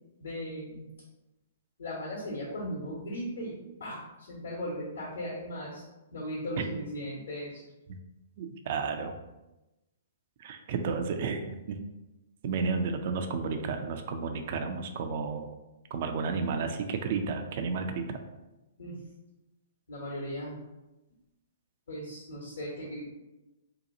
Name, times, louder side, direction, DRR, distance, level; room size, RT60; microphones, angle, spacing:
voice 1, 0.2-0.9 1.8-5.8 6.1-7.6 18.8-19.0 19.9-20.6 21.9-23.0, equal, 75° left, -4 dB, 1.0 m, -37 dB
voice 2, 8.4-9.1 10.4-11.8 12.4-15.5 15.9-18.1, right 5 dB, 50° right, 6 dB, 0.4 m, -32 dB
2.8 x 2.2 x 3.8 m, 1.0 s
hypercardioid pair, 120°, 0 cm